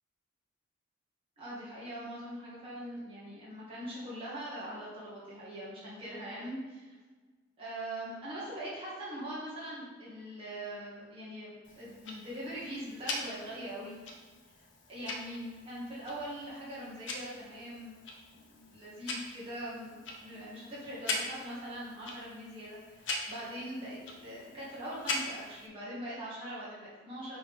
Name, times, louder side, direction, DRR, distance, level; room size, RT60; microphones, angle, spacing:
voice 1, 1.4-7.0 7.6-13.9 14.9-17.9 18.3-27.4, right 1 dB, 25° right, -9 dB, 1.9 m, -42 dB
Tick-tock, 11.6-25.7, left 2 dB, 70° left, 0.8 m, -42 dB
5.9 x 3.5 x 5.6 m, 1.4 s
head